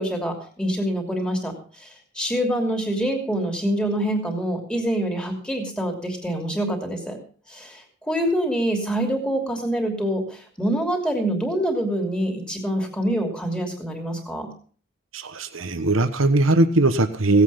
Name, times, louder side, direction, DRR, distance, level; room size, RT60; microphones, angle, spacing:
voice 1, 0.0-1.9 2.1-7.2 7.5-14.5, right 1 dB, 5° left, 2 dB, 2.9 m, -25 dB
voice 2, 15.1-17.4, right 2 dB, 85° right, 10 dB, 1.2 m, -19 dB
17.5 x 8.3 x 5.7 m, 0.43 s
head